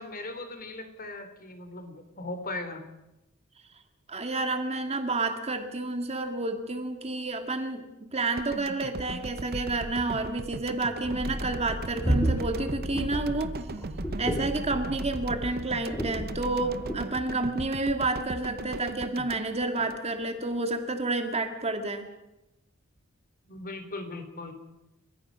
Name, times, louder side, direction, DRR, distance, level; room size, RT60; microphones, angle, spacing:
voice 1, 0.0-2.8 23.5-24.5, left 2 dB, 45° left, 8 dB, 3.1 m, -38 dB
voice 2, 4.1-13.5 14.2-22.1, right 2 dB, 30° right, 6 dB, 2.1 m, -30 dB
sound 1, 8.4-20.6, right 3 dB, 45° right, 0.7 m, -39 dB
sound 2, 11.0-17.0, equal, 10° left, 6.7 m, -32 dB
30.0 x 15.0 x 6.3 m, 0.94 s
head